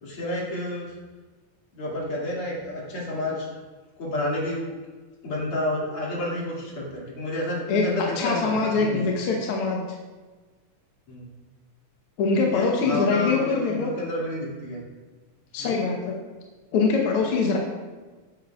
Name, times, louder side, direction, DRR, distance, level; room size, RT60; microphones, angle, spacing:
voice 1, 0.0-0.9 1.7-3.5 4.0-4.7 5.2-9.0 11.1-11.3 12.3-14.8 15.6-15.8, left 1 dB, 45° left, -5 dB, 2.9 m, -30 dB
voice 2, 7.7-9.8 12.2-13.9 15.5-16.0 16.7-17.6, left 4 dB, 70° left, -1 dB, 1.3 m, -23 dB
11.0 x 8.5 x 2.4 m, 1.3 s
omnidirectional pair, 3.7 m